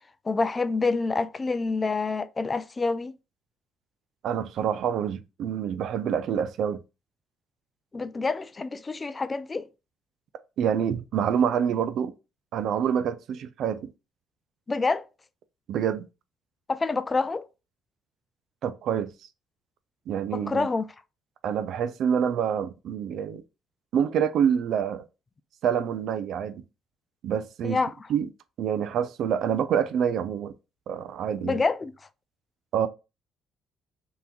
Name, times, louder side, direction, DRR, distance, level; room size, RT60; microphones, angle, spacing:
voice 1, 0.2-3.1 7.9-9.7 14.7-15.0 16.7-17.5 20.3-20.9 27.6-27.9 31.4-31.9, left 3 dB, 30° left, 0.4 m, -27 dB
voice 2, 4.2-6.8 10.6-12.1 12.5-13.9 15.7-16.1 18.6-19.1 20.1-20.7 21.4-23.4 23.9-25.0 25.6-26.6 27.2-27.8 28.1-28.3 28.6-30.5 30.9-31.6 32.7-32.9, right 8 dB, 65° right, 0.5 m, -26 dB
3.4 x 2.9 x 3.9 m
supercardioid pair, 65°, 0 cm